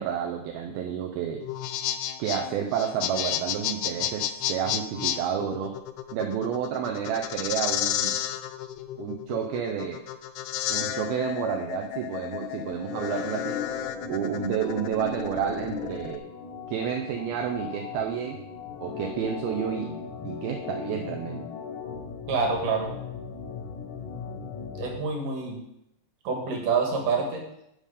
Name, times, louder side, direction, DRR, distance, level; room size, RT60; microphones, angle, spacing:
voice 1, 0.0-1.4 2.2-5.7 6.1-8.2 9.0-10.0 10.7-13.6 14.1-16.2 16.7-18.4 18.8-19.9 20.2-21.4, right 8 dB, 80° right, 3 dB, 2.3 m, -30 dB
sound 1, 1.4-16.2, left 11 dB, 80° left, 2.6 m, -32 dB
Organ, 12.9-25.0, left 6 dB, 65° left, 2.0 m, -37 dB
voice 2, 22.3-22.9 24.8-25.6 26.2-27.4, right 4 dB, 55° right, 1 dB, 2.8 m, -27 dB
11.0 x 5.3 x 5.0 m, 0.80 s
omnidirectional pair, 4.8 m